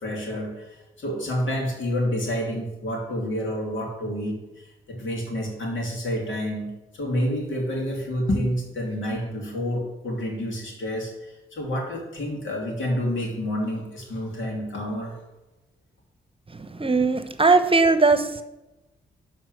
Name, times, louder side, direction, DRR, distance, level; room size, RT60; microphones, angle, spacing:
voice 1, 0.0-15.2, equal, 70° left, 0 dB, 2.9 m, -29 dB
voice 2, 16.5-18.4, right 3 dB, 25° right, 9 dB, 1.0 m, -20 dB
11.5 x 4.3 x 6.7 m, 1.0 s
supercardioid pair, 40°, 20 cm